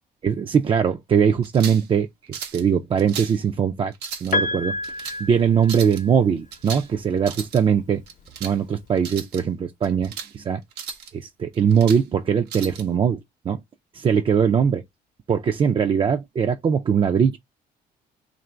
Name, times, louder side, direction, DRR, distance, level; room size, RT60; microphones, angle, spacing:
voice 1, 0.2-3.9 4.2-4.8 5.2-8.0 8.4-10.6 11.1-13.2 13.4-13.6 13.9-14.8 15.3-17.4, right 7 dB, 30° right, 0.4 m, -21 dB
sound 1, 1.4-1.9 2.3-2.7 3.0-3.4 3.9-4.4 4.8-5.2 5.6-6.0 6.5-6.9 7.2-7.6 8.1-8.6 9.0-9.4 9.8-10.3 10.7-11.1 11.5-12.0 12.5-12.8, right 7 dB, 80° right, 0.8 m, -35 dB
Piano, 4.3-6.3 7.6-7.7, left 2 dB, 50° left, 0.7 m, -28 dB
2.9 x 2.6 x 4.3 m
cardioid pair, 110°, 17 cm